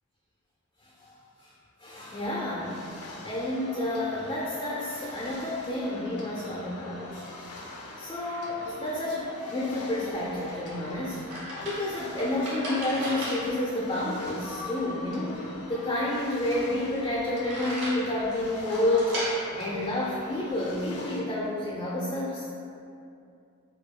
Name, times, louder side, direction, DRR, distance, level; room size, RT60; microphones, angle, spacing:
voice 1, 0.8-1.5 1.8-2.8 3.2-7.2 8.0-11.3 11.6-19.2 19.5-22.5, left 1 dB, 20° left, -5 dB, 0.3 m, -30 dB
sound 1, 2.1-21.2, left 2 dB, 85° left, 0.5 m, -43 dB
sound 2, 10.0-20.8, equal, 55° right, 1.0 m, -39 dB
4.7 x 2.3 x 2.2 m, 2.5 s
head